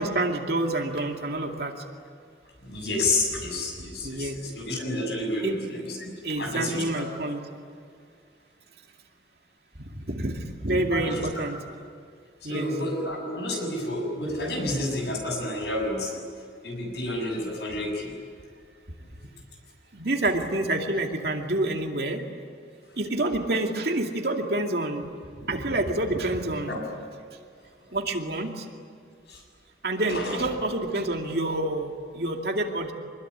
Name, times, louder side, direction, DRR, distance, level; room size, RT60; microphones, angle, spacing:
voice 1, 0.0-1.7 4.0-4.4 5.4-5.6 6.2-7.4 9.8-11.6 12.4-12.7 19.9-22.2 23.0-25.1 25.4-26.7 27.9-28.7 29.8-32.9, right 2 dB, 55° right, 2 dB, 2.4 m, -28 dB
voice 2, 2.6-7.1 10.9-11.3 12.4-16.2 16.6-18.1 26.7-26.8 29.3-29.4 30.1-30.4, left 1 dB, 65° left, 1 dB, 7.4 m, -30 dB
25.0 x 21.5 x 10.0 m, 2.2 s
head